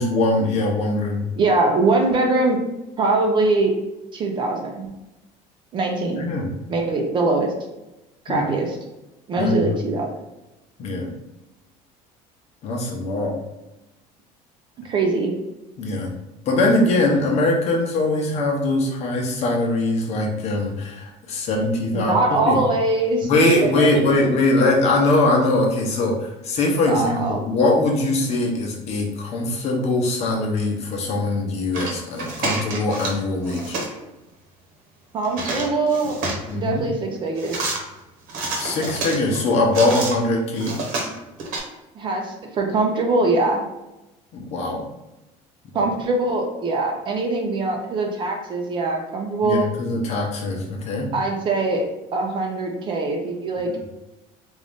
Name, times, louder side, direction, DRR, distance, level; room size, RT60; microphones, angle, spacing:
voice 1, 0.0-1.2 6.2-6.5 8.3-8.5 9.3-9.7 10.8-11.1 12.6-13.4 15.8-16.1 16.5-22.6 23.2-33.8 36.5-36.8 38.5-40.8 44.3-44.8 45.7-45.9 49.4-51.1, left 2 dB, 45° left, 0 dB, 0.9 m, -22 dB
voice 2, 1.3-2.6 3.0-3.7 4.1-4.9 5.7-6.3 6.7-7.5 8.3-8.8 9.3-10.1 14.8-15.3 21.9-24.3 26.9-27.4 35.1-36.2 36.5-37.7 41.9-43.6 45.7-49.6 51.1-51.9 52.1-53.7, right 3 dB, 30° right, 1 dB, 0.6 m, -22 dB
sound 1, 31.7-33.2 33.4-33.9 35.2-36.5 37.4-37.8 38.3-40.2 40.6-41.6, right 3 dB, 65° right, 1.1 m, -28 dB
3.7 x 2.6 x 3.6 m, 0.98 s
cardioid pair, 155°, 15 cm